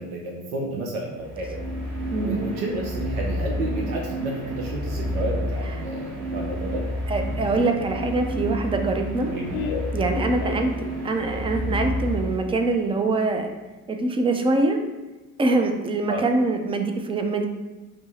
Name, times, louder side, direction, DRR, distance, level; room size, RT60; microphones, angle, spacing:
voice 1, 0.0-1.6 2.1-6.8 9.3-9.5 10.5-10.7 16.1-16.2, right 2 dB, 70° right, -1 dB, 0.8 m, -31 dB
sound 1, 1.1-12.8, equal, 45° right, 1.5 m, -30 dB
voice 2, 7.1-9.3 9.9-10.7 11.0-13.5 13.9-14.8 15.4-17.5, right 3 dB, 15° right, 5 dB, 0.4 m, -24 dB
Laughter, 7.6-11.2, left 7 dB, 65° left, 0.6 m, -35 dB
5.2 x 2.0 x 4.3 m, 1.1 s
hypercardioid pair, 60°, 44 cm